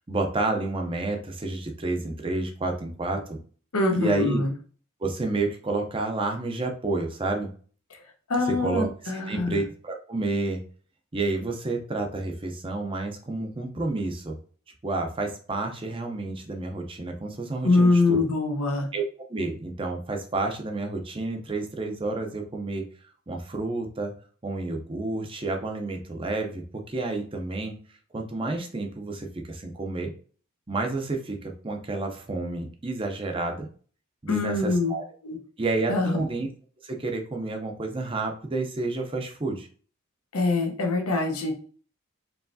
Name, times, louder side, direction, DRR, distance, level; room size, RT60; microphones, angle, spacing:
voice 1, 0.1-3.4 3.9-4.4 5.0-7.5 8.5-10.6 11.1-14.4 14.8-18.2 18.9-19.0 19.3-22.9 23.3-24.1 24.4-26.6 26.9-27.7 28.1-30.1 30.7-33.7 34.2-35.0 35.6-36.5 36.8-39.7, right 2 dB, 25° right, 3 dB, 0.5 m, -30 dB
voice 2, 3.7-4.5 8.3-9.6 17.6-18.9 34.3-34.9 35.2-35.4 35.9-36.2 40.3-41.5, left 3 dB, 85° left, 3 dB, 0.9 m, -24 dB
4.6 x 3.1 x 2.6 m, 0.43 s
head